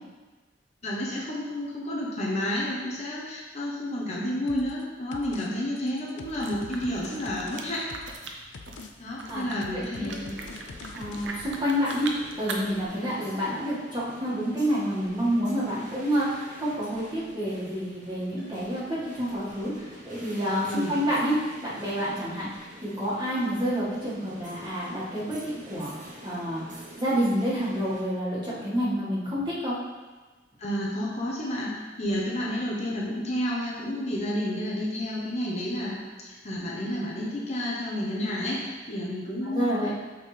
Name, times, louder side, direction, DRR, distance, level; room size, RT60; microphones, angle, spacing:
voice 1, 0.8-7.8 9.0-10.2 20.7-21.0 30.6-39.8, left 1 dB, 40° left, -4 dB, 1.0 m, -30 dB
sound 1, 4.5-4.8 5.1-5.5 5.8-8.3 8.5-8.9 9.2-11.3, left 4 dB, 90° left, 0.5 m, -44 dB
sound 2, 6.2-12.9, right 3 dB, 80° right, 0.7 m, -41 dB
voice 2, 9.3-10.3 10.9-12.1 12.4-26.6 27.0-29.8 39.4-39.9, equal, 25° right, -9 dB, 1.8 m, -29 dB
sound 3, 10.1-28.0, equal, 45° right, 1.2 m, -47 dB
8.0 x 3.9 x 3.3 m, 1.3 s
head